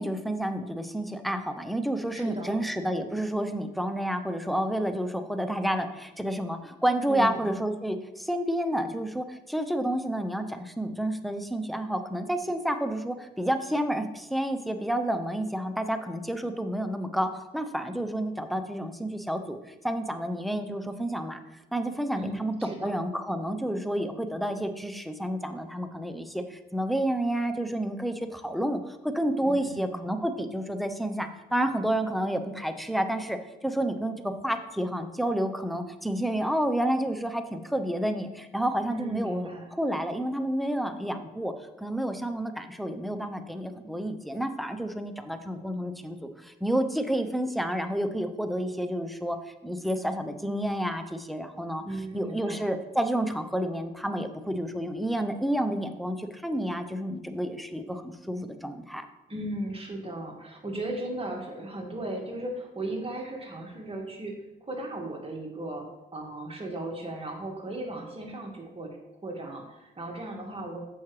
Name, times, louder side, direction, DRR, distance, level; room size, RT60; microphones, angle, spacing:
voice 1, 0.0-21.4 21.7-41.5 41.8-49.4 49.6-51.8 52.1-59.1, right 1 dB, ahead, 8 dB, 0.7 m, -30 dB
voice 2, 2.1-2.6 7.1-7.5 22.1-22.9 29.4-30.1 38.9-39.7 51.8-52.7 59.3-64.4 64.6-65.9 66.1-69.0 69.2-70.8, right 1 dB, 30° right, 1 dB, 1.8 m, -36 dB
7.3 x 5.7 x 3.2 m, 0.97 s
cardioid pair, 60°, 19 cm